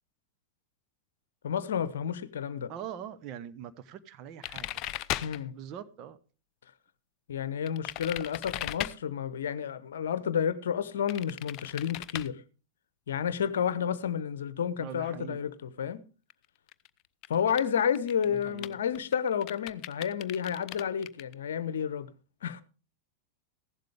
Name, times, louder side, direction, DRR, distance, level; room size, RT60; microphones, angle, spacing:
voice 1, 1.4-2.7 5.2-5.5 7.3-12.4 13.1-16.0 17.3-22.1 22.4-22.6, left 8 dB, 60° left, 0.8 m, -31 dB
voice 2, 2.7-4.8 5.5-6.2 14.8-15.4 18.2-18.8, right 9 dB, 40° right, 1.0 m, -42 dB
sound 1, 4.4-5.4 7.7-8.9 11.1-12.3 16.3-16.4 16.7-16.9 17.2-17.6 17.9-21.3, left 14 dB, 40° left, 0.5 m, -37 dB
15.0 x 11.5 x 3.5 m
figure-of-eight pair, 90°, 0 cm